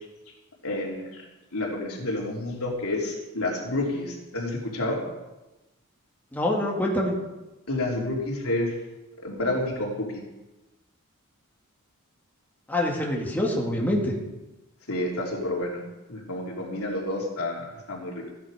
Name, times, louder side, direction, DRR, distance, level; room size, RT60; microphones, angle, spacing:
voice 1, 0.6-1.2 1.5-5.0 7.7-8.8 9.2-10.2 14.9-15.8 16.1-18.3, left 1 dB, 75° left, -2 dB, 3.4 m, -29 dB
voice 2, 6.3-7.1 12.7-14.1, left 1 dB, 10° left, -3 dB, 2.1 m, -25 dB
14.5 x 10.0 x 5.0 m, 1.0 s
head